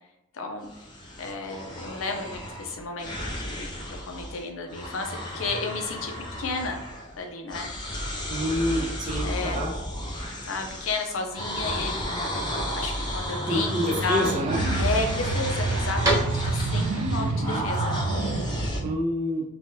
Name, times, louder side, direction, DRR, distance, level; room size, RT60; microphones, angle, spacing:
voice 1, 0.3-0.7 1.2-3.7 4.0-6.8 7.2-7.7 9.2-9.6 10.5-14.3 14.8-18.0, left 3 dB, 75° left, 3 dB, 0.5 m, -32 dB
sound 1, 0.6-4.4 4.7-7.2 7.5-18.8, equal, 20° left, 0.5 m, -33 dB
voice 2, 8.3-9.7 13.5-14.6 17.1-17.6 18.8-19.4, equal, 40° right, -1 dB, 0.7 m, -28 dB
sound 2, 8.4-16.9, right 1 dB, 15° right, 1.0 m, -36 dB
sound 3, 13.9-18.9, right 3 dB, 80° right, 0.3 m, -28 dB
3.3 x 2.2 x 2.7 m, 0.88 s
head